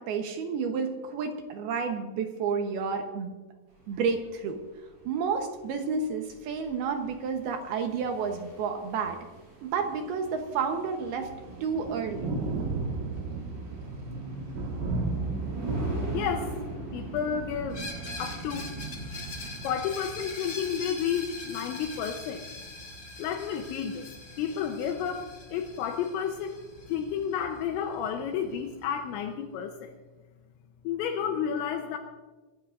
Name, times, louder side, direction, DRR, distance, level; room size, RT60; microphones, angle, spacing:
voice 1, 0.0-3.3 3.9-4.6 5.1-9.3 9.6-11.3 11.6-12.4, right 5 dB, 70° right, 4 dB, 2.5 m, -30 dB
sound 1, 3.8-19.6, right 1 dB, 25° right, 5.9 m, -42 dB
Thunder, 11.0-29.0, right 3 dB, 85° right, 4.3 m, -38 dB
voice 2, 16.1-16.5 16.9-17.8 18.2-18.7 19.6-22.5 23.2-24.1 24.4-26.6 26.9-29.9 30.8-32.0, left 8 dB, 80° left, 4 dB, 3.1 m, -31 dB
Screech, 17.7-27.3, left 3 dB, 30° left, 1.9 m, -42 dB
24.5 x 14.5 x 2.6 m, 1.3 s
omnidirectional pair, 5.4 m